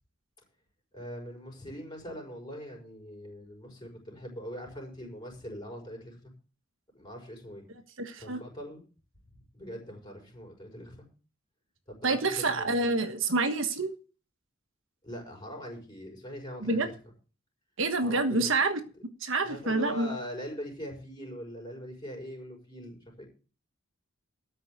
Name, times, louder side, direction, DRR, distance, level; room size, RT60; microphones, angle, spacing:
voice 1, 0.9-6.3 6.9-7.6 8.2-8.8 9.3-11.1 11.9-12.9 15.0-16.9 18.0-18.5 19.4-23.3, equal, 20° left, 5.8 m, -42 dB
voice 2, 8.0-8.4 12.0-13.9 16.6-16.9 17.8-18.8 19.2-20.2, right 3 dB, 65° right, 1.4 m, -27 dB
13.5 x 5.6 x 8.0 m
head